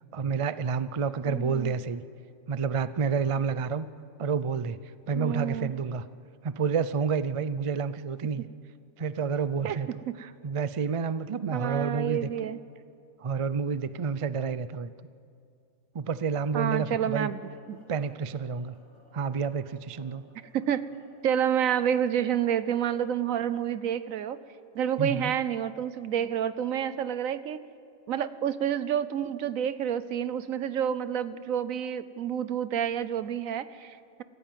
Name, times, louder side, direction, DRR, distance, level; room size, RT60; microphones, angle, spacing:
voice 1, 0.1-2.0 2.5-3.9 4.2-4.8 5.1-6.0 6.4-8.5 9.0-9.9 10.2-12.5 13.2-14.9 15.9-17.3 17.9-18.8 19.1-20.2 25.0-25.3, right 5 dB, 50° right, 14 dB, 0.4 m, -29 dB
voice 2, 1.2-1.7 5.1-5.7 9.6-9.8 11.5-12.6 16.5-17.4 17.7-17.8 20.5-20.8 21.2-24.4 24.7-27.6 28.1-34.2, right 9 dB, 75° right, 14 dB, 1.2 m, -29 dB
sound 1, 17.1-23.1, left 1 dB, 35° left, 6.0 m, -58 dB
28.0 x 15.5 x 7.6 m, 2.4 s
omnidirectional pair, 1.4 m